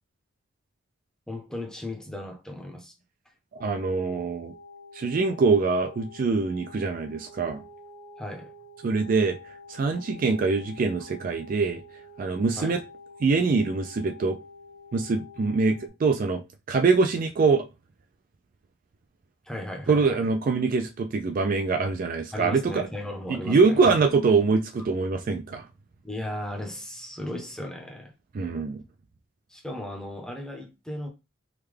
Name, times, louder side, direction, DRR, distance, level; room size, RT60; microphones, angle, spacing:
voice 1, 1.3-2.9 8.2-8.5 12.6-12.8 19.4-20.2 22.3-23.8 26.0-28.1 29.5-31.1, left 1 dB, 5° left, 0.7 m, -36 dB
voice 2, 3.6-4.5 4.9-7.6 8.8-9.4 9.7-11.8 12.2-12.8 13.2-14.4 14.9-16.4 16.7-17.6 19.9-22.9 23.3-25.7 28.3-28.8, right 4 dB, 45° right, 0.3 m, -24 dB
sound 1, 3.6-15.9, left 2 dB, 70° right, 1.0 m, -48 dB
3.5 x 2.2 x 3.2 m
head